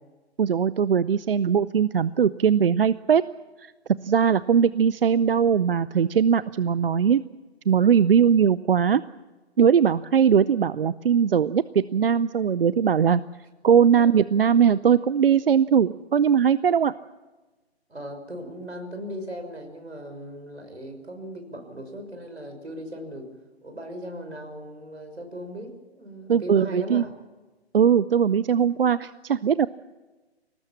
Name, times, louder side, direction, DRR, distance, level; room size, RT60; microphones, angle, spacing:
voice 1, 0.4-3.2 3.6-3.7 4.0-7.2 7.7-9.0 9.6-13.2 13.6-16.9 26.3-27.0 27.7-29.7, right 7 dB, 60° right, 17 dB, 0.6 m, -20 dB
voice 2, 17.9-23.3 23.6-27.1, equal, 85° right, 6 dB, 5.9 m, -38 dB
23.5 x 19.0 x 7.4 m, 1.2 s
figure-of-eight pair, 135°, 32 cm